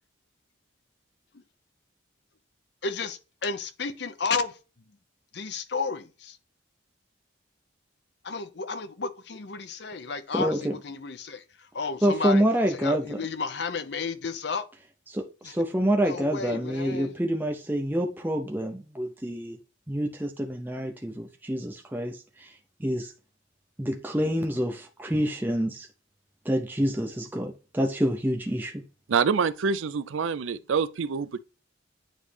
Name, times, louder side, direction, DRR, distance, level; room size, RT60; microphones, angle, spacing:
voice 1, 2.8-4.6 5.3-6.4 8.2-14.7 15.4-15.5 16.0-17.2, left 4 dB, 55° left, 0.6 m, -32 dB
voice 2, 10.3-10.7 12.0-13.2 15.1-19.6 19.9-22.5 22.8-23.1 23.8-25.9 26.5-28.8, equal, 10° right, 0.5 m, -27 dB
voice 3, 29.1-31.4, right 5 dB, 80° right, 0.4 m, -26 dB
9.0 x 3.2 x 3.3 m
head